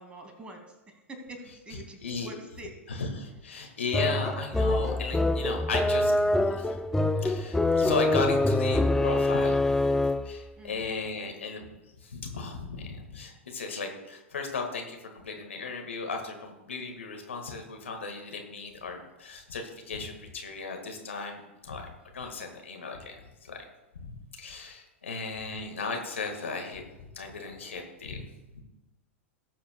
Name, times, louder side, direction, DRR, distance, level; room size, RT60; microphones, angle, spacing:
voice 1, 0.0-2.7 10.6-10.9, right 1 dB, 15° right, 4 dB, 2.0 m, -45 dB
voice 2, 1.7-2.3 2.9-6.1 6.5-6.8 7.2-9.8 10.2-11.6 12.0-21.9 22.1-23.6 24.0-26.8 27.1-28.2 28.5-28.6, left 4 dB, 70° left, 3 dB, 1.6 m, -36 dB
sound 1, 3.9-10.4, left 2 dB, 5° left, 0.4 m, -25 dB
18.5 x 7.4 x 2.2 m, 1.0 s
figure-of-eight pair, 95°, 7 cm